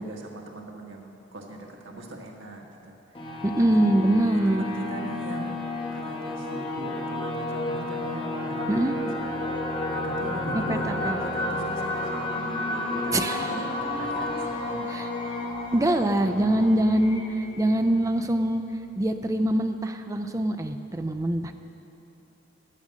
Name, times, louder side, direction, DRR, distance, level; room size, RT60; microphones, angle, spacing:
voice 1, 0.0-3.9 4.3-5.6 5.9-8.8 9.2-13.1 13.4-15.1, right 1 dB, 85° right, 0 dB, 1.5 m, -41 dB
sound 1, 3.2-18.5, left 2 dB, 25° left, 1.0 m, -31 dB
voice 2, 3.4-4.6 8.7-8.9 10.7-11.2 13.1-13.5 14.9-15.1 15.7-17.2 17.6-18.6 19.0-21.5, right 1 dB, 15° right, 7 dB, 0.4 m, -23 dB
11.0 x 8.8 x 6.4 m, 2.9 s
head